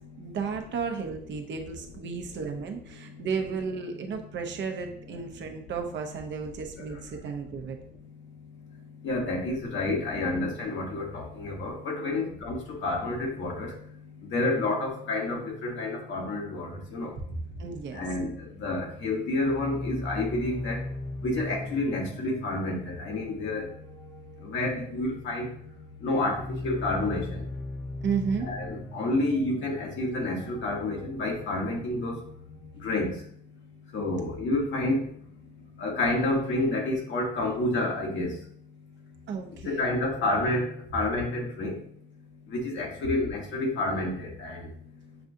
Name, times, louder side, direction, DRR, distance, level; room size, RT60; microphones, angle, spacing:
voice 1, 0.2-7.8 12.1-12.4 17.3-18.0 28.0-28.5 39.3-40.3, right 5 dB, 65° right, 4 dB, 0.8 m, -33 dB
voice 2, 2.9-3.3 6.7-7.3 8.4-8.6 9.0-17.1 17.9-20.8 21.2-23.7 24.4-25.5 26.0-27.4 28.4-32.2 32.7-33.3 33.9-35.1 35.8-38.4 39.6-41.9 42.5-44.7, left 2 dB, 70° left, 0 dB, 1.3 m, -29 dB
sound 1, 19.4-33.1, left 2 dB, 15° left, 0.4 m, -40 dB
6.8 x 2.5 x 2.6 m, 0.63 s
cardioid pair, 90°, 20 cm